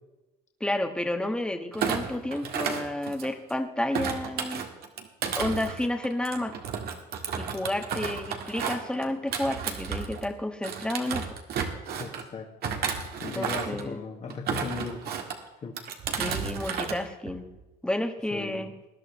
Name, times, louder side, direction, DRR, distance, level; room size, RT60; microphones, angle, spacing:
voice 1, 0.6-4.6 5.4-6.6 7.4-11.3 13.3-14.0 16.2-17.5 17.8-18.7, left 1 dB, 5° left, 5 dB, 1.4 m, -31 dB
Thump thud, 1.7-3.5 3.9-10.3 10.6-12.2 12.6-13.8 14.3-15.4 15.8-17.0 17.3-17.6, right 7 dB, 65° right, 1.8 m, -32 dB
voice 2, 12.0-12.8 13.2-15.1 15.6-15.8 18.3-18.7, left 4 dB, 45° left, 1 dB, 1.8 m, -37 dB
20.0 x 11.5 x 3.2 m, 1.0 s
cardioid pair, 110°, 17 cm